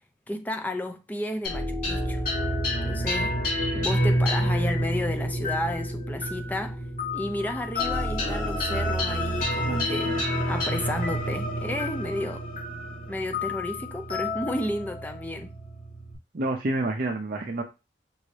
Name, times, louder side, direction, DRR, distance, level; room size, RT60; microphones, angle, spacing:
voice 1, 0.3-2.2 2.8-3.3 3.7-6.8 7.1-10.2 10.5-12.4 13.1-15.5, left 1 dB, 10° left, 0.5 m, -32 dB
sound 1, 1.4-16.1, left 1 dB, 50° left, 3.0 m, -28 dB
voice 2, 9.6-10.2 16.3-17.6, right 2 dB, 50° right, 0.6 m, -29 dB
6.0 x 2.7 x 3.2 m
head